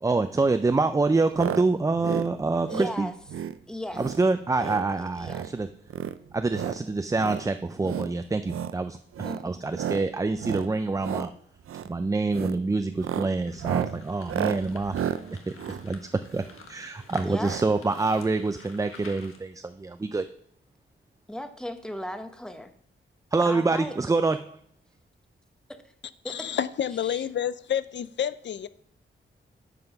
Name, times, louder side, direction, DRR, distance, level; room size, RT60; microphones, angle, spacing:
voice 1, 0.0-3.1 4.0-5.7 6.3-9.0 9.4-11.3 11.9-14.9 15.7-16.0 16.3-16.4 16.7-20.2 23.3-24.6, right 3 dB, 15° right, 0.4 m, -26 dB
sound 1, 1.3-1.6 1.9-2.3 2.6-2.9 3.3-3.6 3.9-4.2 4.5-4.9 5.2-5.5 5.9-6.8 7.2-7.4 7.8-8.1 8.4-8.8 9.1-9.4 9.7-10.0 10.4-10.7 11.0-11.3 11.6-11.9 12.3-12.6 12.9-16.6 17.4-17.7 17.9-18.0 18.2-18.3, right 9 dB, 90° right, 0.5 m, -32 dB
voice 2, 2.7-3.1 3.7-4.0 4.6-5.4 9.2-9.5 17.2-17.5 21.3-22.7 23.4-24.0 25.7-25.9 26.2-26.5 27.0-27.2, left 1 dB, 5° left, 0.8 m, -36 dB
sound 2, 13.5-19.4, left 4 dB, 90° left, 1.4 m, -50 dB
voice 3, 26.2-28.7, left 9 dB, 60° left, 0.5 m, -29 dB
9.5 x 5.4 x 5.8 m
wide cardioid pair, 115°, 21 cm